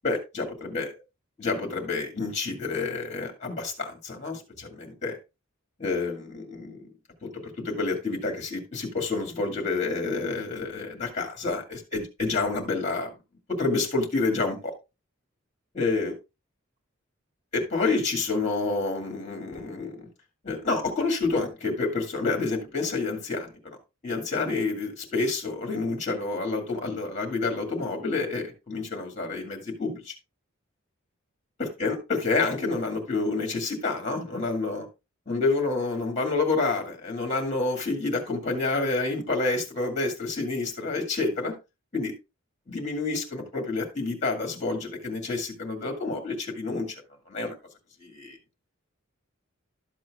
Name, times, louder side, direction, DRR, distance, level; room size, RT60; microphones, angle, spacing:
voice 1, 0.0-0.9 1.4-5.2 5.8-6.9 7.2-13.1 13.5-14.7 15.7-16.2 17.5-20.1 20.4-23.5 24.0-30.1 31.6-34.9 35.3-41.5 41.9-42.1 42.7-47.0 47.3-47.5 48.0-48.4, left 3 dB, 35° left, 3 dB, 2.1 m, -28 dB
12.0 x 7.4 x 2.4 m, 0.25 s
head